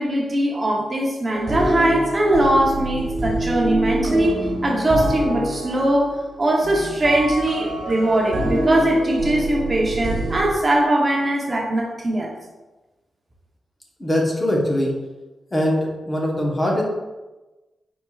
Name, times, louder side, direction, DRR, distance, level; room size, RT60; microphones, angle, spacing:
voice 1, 0.0-12.4, right 1 dB, 30° right, -1 dB, 0.7 m, -21 dB
sound 1, 1.3-10.5, right 1 dB, 70° right, 0.7 m, -25 dB
voice 2, 14.0-14.9 15.5-16.8, left 1 dB, 20° left, -2 dB, 0.9 m, -21 dB
4.4 x 4.3 x 2.3 m, 1.1 s
wide cardioid pair, 115°, 0 cm